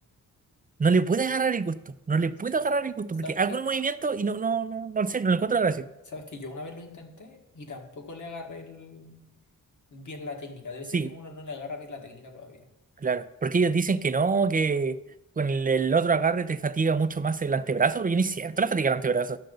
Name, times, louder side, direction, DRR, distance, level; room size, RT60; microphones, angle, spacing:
voice 1, 0.8-5.9 10.9-11.1 13.0-15.0 15.4-19.4, right 4 dB, 25° right, 13 dB, 0.5 m, -25 dB
voice 2, 3.2-3.6 6.1-9.2 9.9-12.6, left 3 dB, 55° left, 3 dB, 1.8 m, -40 dB
11.5 x 6.5 x 3.9 m, 0.93 s
cardioid pair, 55°, 36 cm